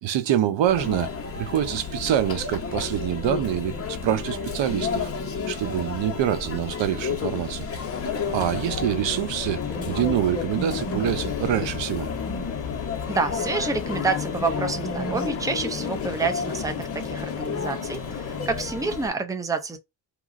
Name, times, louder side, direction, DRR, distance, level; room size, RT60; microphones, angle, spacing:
voice 1, 0.0-5.1 5.5-7.7 8.1-9.6 9.9-12.1, right 11 dB, 85° right, 0.6 m, -26 dB
Conversation / Chatter / Crowd, 0.7-19.1, left 5 dB, 30° left, 0.9 m, -31 dB
sound 1, 7.8-18.5, left 7 dB, 80° left, 0.8 m, -36 dB
voice 2, 13.1-19.8, right 4 dB, 10° right, 0.6 m, -28 dB
2.9 x 2.4 x 2.5 m
cardioid pair, 110°, 44 cm